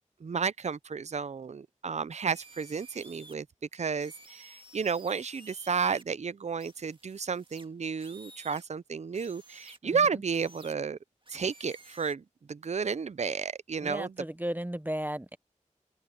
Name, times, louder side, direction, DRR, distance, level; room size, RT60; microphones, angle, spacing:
voice 1, 0.2-3.5 3.7-11.0 11.3-14.1, right 5 dB, 60° right, 0.4 m, -32 dB
sound 1, 2.3-3.3 4.0-6.0 6.6-8.7 9.1-9.8 10.3-10.7 11.2-12.1, right 2 dB, 40° right, 1.9 m, -52 dB
voice 2, 13.8-15.4, equal, 15° right, 0.7 m, -34 dB
open air
wide cardioid pair, 50°, 13 cm